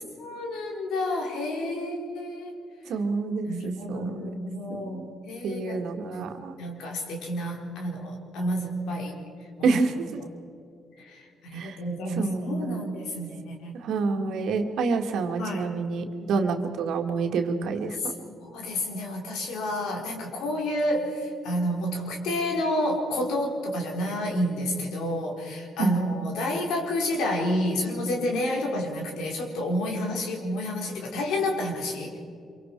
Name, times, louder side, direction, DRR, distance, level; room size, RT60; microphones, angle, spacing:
voice 1, 0.2-2.5 3.4-5.9 6.1-9.2 9.6-9.8 11.0-13.8 15.4-15.8 18.0-32.2, left 1 dB, 90° left, 1 dB, 4.3 m, -30 dB
voice 2, 2.9-4.2 5.0-5.1 5.4-6.6 9.6-9.9 11.5-11.8 12.2-12.9 13.8-18.0 25.8-25.9, right 4 dB, 80° right, 4 dB, 2.2 m, -28 dB
26.5 x 24.0 x 4.8 m, 2.5 s
cardioid pair, 90°, 0 cm